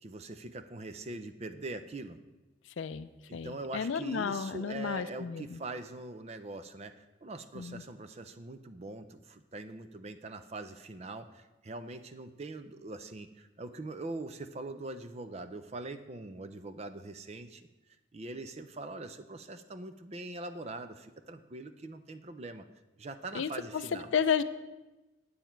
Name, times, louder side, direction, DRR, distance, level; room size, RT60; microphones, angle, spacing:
voice 1, 0.0-2.2 3.3-17.7 18.1-22.7 23.0-24.1, right 2 dB, 30° right, 10 dB, 0.4 m, -42 dB
voice 2, 2.8-5.6 7.6-7.8 23.3-23.5 24.1-24.4, left 7 dB, 70° left, 11 dB, 0.4 m, -32 dB
9.2 x 8.5 x 4.5 m, 1.1 s
head